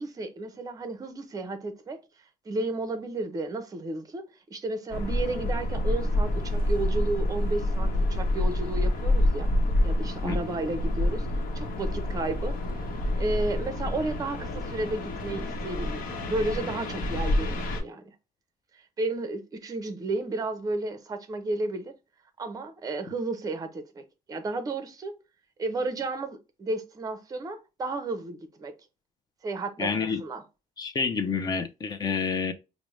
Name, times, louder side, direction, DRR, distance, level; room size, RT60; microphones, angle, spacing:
voice 1, 0.0-2.0 2.5-9.5 9.8-11.3 11.5-12.6 13.2-18.0 19.0-21.9 22.4-25.1 25.6-28.7 29.4-29.9 30.2-30.4, right 2 dB, 25° right, 0.6 m, -32 dB
sound 1, 4.9-17.8, left 1 dB, 85° left, 0.8 m, -28 dB
voice 2, 29.8-30.2 30.8-32.5, left 5 dB, 30° left, 0.5 m, -28 dB
4.9 x 2.1 x 3.0 m
cardioid pair, 170°, 14 cm